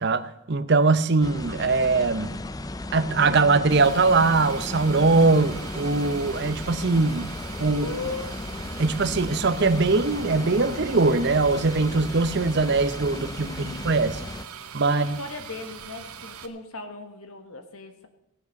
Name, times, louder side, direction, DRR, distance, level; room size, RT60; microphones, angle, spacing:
voice 1, 0.0-2.3 2.9-7.3 7.6-7.9 8.8-14.2 14.7-15.2, right 3 dB, 50° right, 11 dB, 0.8 m, -21 dB
sound 1, 1.2-14.5, left 2 dB, 15° left, 0.4 m, -35 dB
sound 2, 3.7-16.5, right 7 dB, 85° right, 1.1 m, -41 dB
voice 2, 7.7-8.3 13.1-14.2 14.9-18.1, left 3 dB, 80° left, 7 dB, 1.6 m, -38 dB
17.5 x 8.3 x 6.5 m, 0.81 s
head